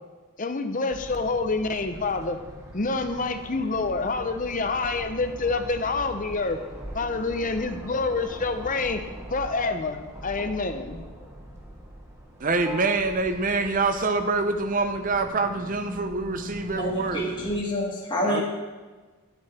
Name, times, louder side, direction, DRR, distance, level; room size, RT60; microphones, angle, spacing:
voice 1, 0.4-2.4 2.7-6.6 6.9-9.0 9.3-11.1, left 3 dB, 35° left, 8 dB, 0.7 m, -27 dB
sound 1, 0.9-17.6, equal, 10° right, 1.2 m, -41 dB
voice 2, 12.4-17.2 18.2-18.4, right 3 dB, 35° right, 8 dB, 0.7 m, -25 dB
voice 3, 16.8-18.4, equal, 20° left, -4 dB, 1.7 m, -27 dB
12.0 x 7.9 x 4.3 m, 1.3 s
head